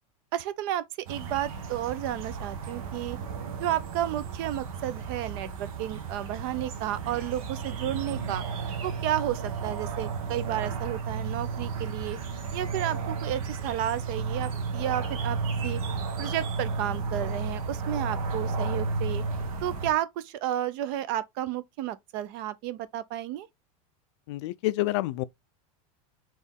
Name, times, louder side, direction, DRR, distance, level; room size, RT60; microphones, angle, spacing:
voice 1, 0.3-3.2 3.6-8.4 8.8-12.2 12.5-15.4 15.6-15.8 16.2-19.2 19.6-23.5, right 12 dB, 40° right, 0.4 m, -32 dB
sound 1, 1.1-19.9, right 4 dB, 75° right, 1.1 m, -33 dB
voice 2, 24.3-25.2, left 17 dB, 50° left, 0.4 m, -28 dB
4.1 x 3.0 x 3.5 m
supercardioid pair, 175°, 18 cm